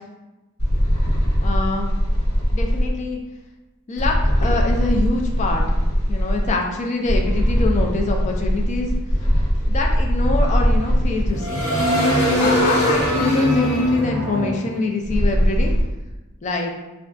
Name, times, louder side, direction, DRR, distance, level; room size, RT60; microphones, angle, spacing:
sound 1, 0.6-2.9 4.0-6.5 7.1-15.8, equal, 85° left, 0.8 m, -20 dB
voice 1, 1.4-1.9 2.5-3.2 3.9-5.8 6.1-9.0 9.7-11.6 12.3-15.7 16.4-16.7, left 3 dB, 30° left, 1 dB, 0.3 m, -25 dB
2.3 x 2.3 x 3.5 m, 1.1 s
head